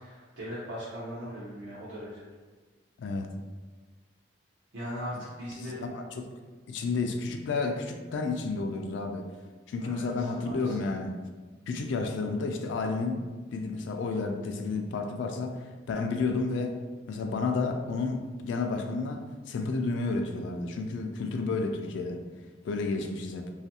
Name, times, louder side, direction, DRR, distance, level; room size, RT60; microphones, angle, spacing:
voice 1, 0.0-2.2 4.7-5.8 9.8-10.8, equal, 85° right, -9 dB, 0.6 m, -39 dB
voice 2, 5.8-6.3 6.7-9.3 9.7-11.2 11.7-13.2 13.5-16.8 17.1-22.2 22.6-23.5, left 3 dB, 70° left, 5 dB, 0.3 m, -31 dB
2.6 x 2.4 x 2.7 m, 1.3 s
head